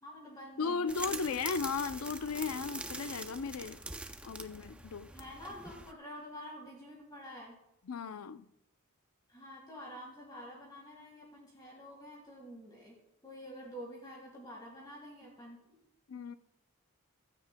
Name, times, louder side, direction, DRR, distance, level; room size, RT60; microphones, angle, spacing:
voice 1, 0.0-1.4 5.1-7.6 9.3-15.8, equal, 20° left, 1.7 m, -48 dB
voice 2, 0.6-3.8 4.2-5.1 7.9-8.5 16.1-16.3, left 5 dB, 80° left, 0.5 m, -36 dB
sound 1, 0.9-5.9, right 2 dB, 5° right, 0.4 m, -44 dB
15.5 x 13.0 x 2.2 m
head